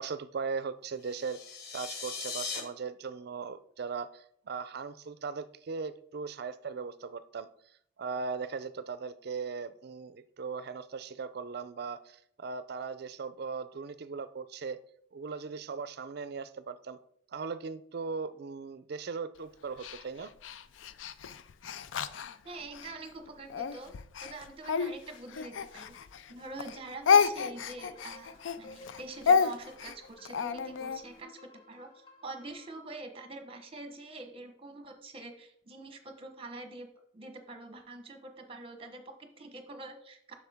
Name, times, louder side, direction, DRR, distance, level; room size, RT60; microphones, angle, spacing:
voice 1, 0.0-7.5 8.0-14.8 15.1-17.0 17.3-20.3, right 5 dB, 55° right, 14 dB, 0.4 m, -38 dB
sound 1, 1.0-2.6, left 5 dB, 55° left, 1.3 m, -39 dB
Speech, 19.8-22.9 23.5-26.3 26.6-31.0, left 6 dB, 85° left, 0.4 m, -30 dB
voice 2, 22.4-23.9 24.2-25.9 26.3-31.4 31.7-36.9 37.1-40.3, right 2 dB, 30° right, 6 dB, 1.0 m, -45 dB
sound 2, 27.3-32.8, left 2 dB, 25° left, 1.3 m, -56 dB
8.2 x 6.1 x 3.5 m, 0.68 s
head